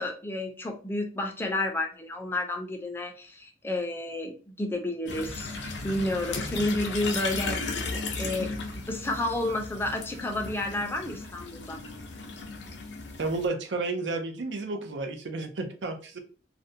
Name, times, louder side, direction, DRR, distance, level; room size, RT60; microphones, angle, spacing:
voice 1, 0.0-7.6 7.9-8.5 8.9-11.8, left 1 dB, 15° left, 2 dB, 0.4 m, -31 dB
sound 1, 5.1-13.5, left 3 dB, 80° left, 0.5 m, -35 dB
voice 2, 13.2-16.2, right 3 dB, 85° right, 7 dB, 0.5 m, -31 dB
2.5 x 2.1 x 2.6 m, 0.38 s
head